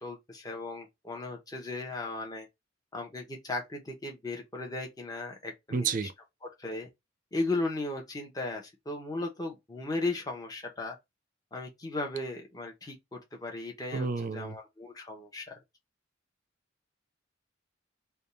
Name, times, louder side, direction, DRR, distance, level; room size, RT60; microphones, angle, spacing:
voice 1, 0.0-2.5 2.9-6.1 6.4-6.9 7.3-11.0 11.5-15.6, left 2 dB, 20° left, 0.8 m, -36 dB
voice 2, 5.7-6.1 13.9-14.5, right 5 dB, 45° right, 0.4 m, -30 dB
3.5 x 2.3 x 4.1 m
head